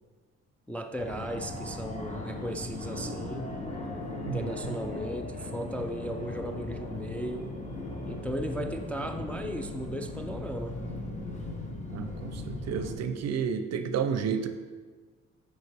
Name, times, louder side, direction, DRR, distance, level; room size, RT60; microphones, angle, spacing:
voice 1, 0.7-3.6 4.3-7.6 8.1-10.9, equal, 5° left, 4 dB, 0.3 m, -36 dB
Fixed-wing aircraft airplane, 1.0-12.9, left 2 dB, 25° left, 1.1 m, -38 dB
voice 2, 11.9-14.5, right 7 dB, 60° right, 9 dB, 0.5 m, -31 dB
6.8 x 4.6 x 3.4 m, 1.4 s
cardioid pair, 90°, 30 cm